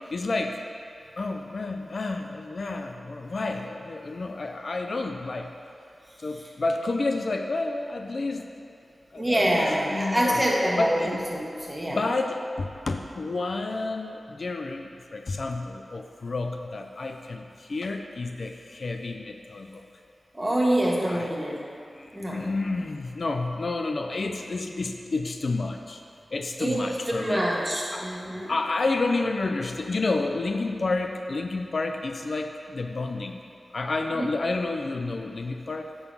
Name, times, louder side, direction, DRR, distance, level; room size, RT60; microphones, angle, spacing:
voice 1, 0.1-0.6 1.2-5.5 6.2-8.5 9.1-9.7 9.9-10.4 10.8-11.2 11.9-19.8 21.1-21.3 22.0-26.0 26.3-27.4 27.9-28.0 28.5-33.3 33.7-35.9, left 3 dB, 60° left, 5 dB, 0.5 m, -30 dB
voice 2, 9.1-12.0 20.3-21.6 22.1-22.5 26.6-28.6 34.1-34.3, right 1 dB, 15° right, -3 dB, 1.6 m, -26 dB
9.6 x 3.9 x 7.0 m, 2.5 s
wide cardioid pair, 65°, 0 cm